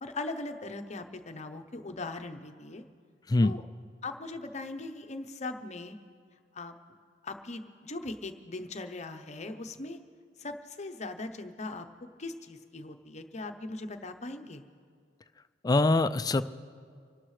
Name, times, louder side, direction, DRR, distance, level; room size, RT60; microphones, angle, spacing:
voice 1, 0.0-2.8 3.4-3.6 4.0-6.0 6.5-6.7 7.2-10.0 10.4-11.9 12.2-14.6, left 2 dB, 35° left, 7 dB, 0.8 m, -39 dB
voice 2, 15.6-16.4, left 2 dB, 20° left, 13 dB, 0.3 m, -23 dB
26.5 x 12.0 x 3.2 m, 2.1 s
head